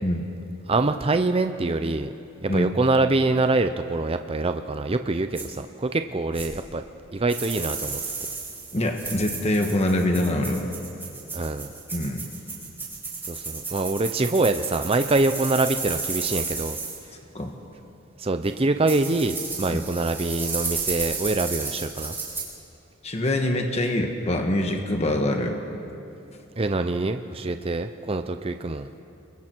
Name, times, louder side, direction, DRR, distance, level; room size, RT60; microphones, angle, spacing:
voice 1, 0.7-2.1 2.4-6.8 7.1-8.0 11.3-11.7 13.3-16.8 18.2-22.1 26.6-28.9, right 2 dB, 30° right, 8 dB, 0.6 m, -25 dB
sound 1, 5.3-5.4 6.3-6.5 7.3-17.0 18.4-18.5 18.9-22.4, right 4 dB, 10° right, 4.8 m, -33 dB
voice 2, 8.7-10.7 11.9-12.3 17.3-17.5 19.7-19.8 23.0-25.6, left 1 dB, 35° left, 3 dB, 1.5 m, -24 dB
30.0 x 22.5 x 4.6 m, 2.8 s
head